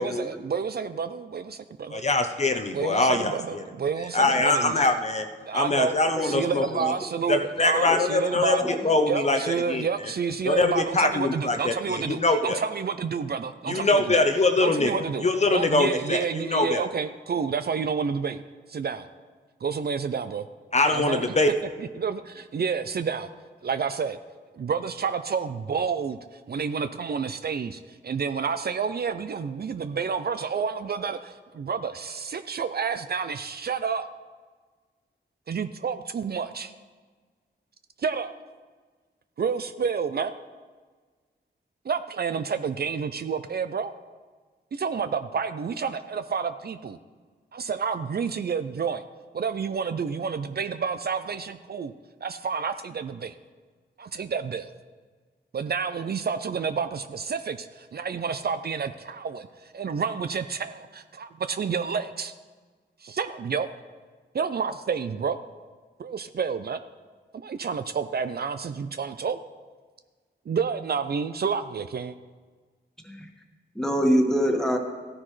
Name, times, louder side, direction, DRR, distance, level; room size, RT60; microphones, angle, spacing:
voice 1, 0.0-2.0 2.7-4.8 5.5-6.0 6.2-8.6 9.1-14.2 14.6-18.4 18.7-19.1 19.6-20.4 20.9-21.3 21.8-23.3 23.6-24.2 24.5-34.1 35.5-36.7 38.0-38.3 39.4-40.3 41.8-43.9 44.7-47.0 47.5-49.0 49.3-51.9 52.2-53.3 54.0-54.7 55.5-62.3 63.0-63.7 64.3-65.4 66.0-66.8 67.3-69.4 70.5-72.1, right 6 dB, 55° right, 11 dB, 0.5 m, -29 dB
voice 2, 1.9-3.6 4.1-5.3 5.5-6.7 7.3-9.9 10.4-12.6 13.7-16.8 20.7-21.5, left 2 dB, 35° left, 6 dB, 0.8 m, -23 dB
voice 3, 73.7-74.8, equal, 5° left, 1 dB, 1.7 m, -24 dB
15.0 x 9.7 x 3.2 m, 1.4 s
wide cardioid pair, 75°, 19 cm